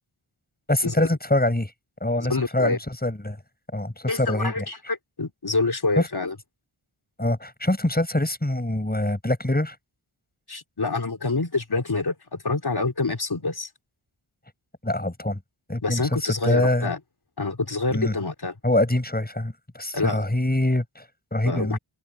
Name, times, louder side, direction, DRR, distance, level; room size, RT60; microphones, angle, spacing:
voice 1, 0.7-1.7 2.0-3.4 3.7-4.7 6.0-6.1 7.2-9.8 14.8-15.4 15.7-16.0 16.4-16.9 17.9-18.1 18.6-21.0 21.3-21.8, left 1 dB, 20° left, 7.5 m, -24 dB
voice 2, 2.2-2.8 4.1-6.4 10.5-13.7 15.8-17.0 17.4-18.6 19.9-20.2 21.5-21.8, left 3 dB, 50° left, 3.9 m, -27 dB
wide cardioid pair, 55°, 48 cm